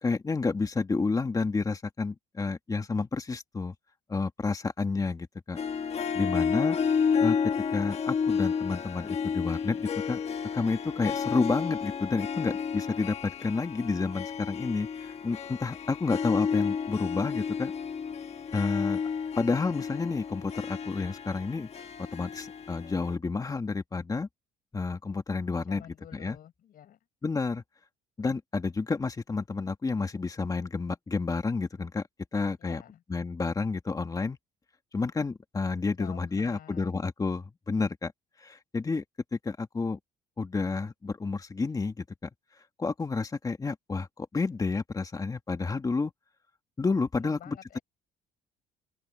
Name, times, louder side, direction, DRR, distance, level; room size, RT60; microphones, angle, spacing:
voice 1, 0.0-3.7 4.1-5.6 6.1-6.8 7.2-7.4 7.7-10.2 10.5-17.7 18.5-19.0 19.4-21.7 22.1-24.3 24.7-25.8 26.1-26.4 27.2-27.6 28.2-32.0 32.3-32.8 33.1-34.4 34.9-38.1 38.4-39.0 39.3-40.0 40.4-42.3 42.8-46.1 46.8-47.6, left 4 dB, 20° left, 2.1 m, -30 dB
Harp, 5.6-23.2, left 6 dB, 40° left, 1.5 m, -31 dB
voice 2, 25.7-27.0 32.6-33.0 36.0-36.9 47.2-47.8, left 11 dB, 60° left, 6.3 m, -49 dB
cardioid pair, 110°, 17 cm